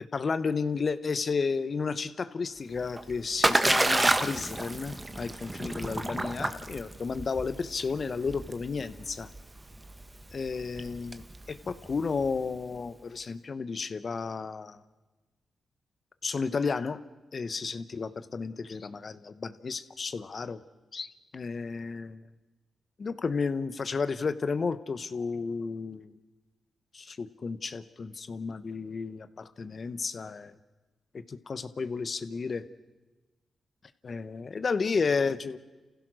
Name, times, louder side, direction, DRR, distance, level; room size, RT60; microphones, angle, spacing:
voice 1, 0.0-9.3 10.3-14.8 16.2-17.0 17.3-20.6 20.9-21.1 21.3-22.2 23.0-26.1 26.9-30.5 31.1-32.6 34.0-35.6, left 4 dB, 55° left, 13 dB, 1.1 m, -32 dB
Splash splatter, 2.7-12.6, right 2 dB, 25° right, 1.6 m, -30 dB
29.5 x 15.5 x 6.4 m, 1.2 s
supercardioid pair, 45°, 0 cm